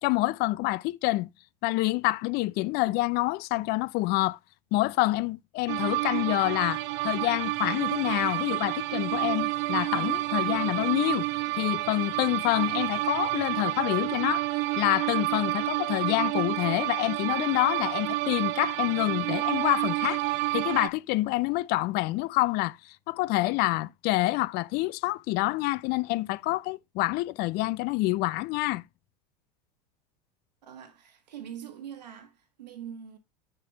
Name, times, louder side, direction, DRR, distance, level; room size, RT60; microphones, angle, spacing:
voice 1, 0.0-1.3 1.6-4.4 4.7-11.3 11.6-14.5 14.8-20.2 20.5-28.8, left 19 dB, 50° left, 0.4 m, -27 dB
sound 1, 5.7-20.9, right 19 dB, 55° right, 0.6 m, -29 dB
voice 2, 30.6-33.2, right 9 dB, 85° right, 1.7 m, -43 dB
6.8 x 5.9 x 3.2 m
hypercardioid pair, 90°, 21 cm